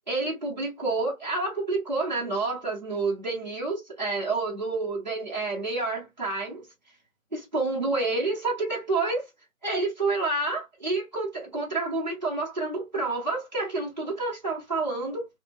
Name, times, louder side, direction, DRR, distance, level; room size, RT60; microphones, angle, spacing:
voice 1, 0.1-6.7 7.3-9.3 9.6-15.3, right 3 dB, 35° right, 0.7 m, -29 dB
2.6 x 2.1 x 2.3 m
figure-of-eight pair, 165°, 40 cm